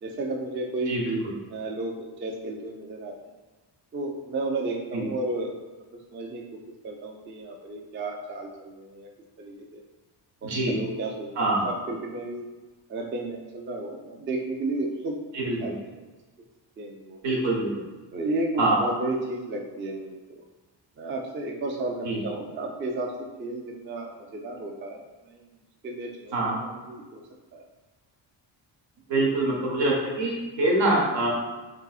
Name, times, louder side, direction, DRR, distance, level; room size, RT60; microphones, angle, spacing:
voice 1, 0.0-1.0 1.5-3.1 3.9-5.6 6.1-6.4 6.8-9.1 9.4-9.8 10.4-12.5 12.9-16.0 16.8-17.2 18.1-20.4 21.0-25.5 25.8-27.2 27.5-27.6, right 2 dB, 30° right, 0 dB, 0.3 m, -33 dB
voice 2, 10.4-10.7 11.4-11.7 15.3-15.6 17.2-17.7 18.6-18.8 22.1-22.2 26.3-26.6 29.1-31.3, right 2 dB, 80° right, -2 dB, 1.0 m, -24 dB
3.9 x 2.7 x 2.3 m, 1.2 s
cardioid pair, 120°, 44 cm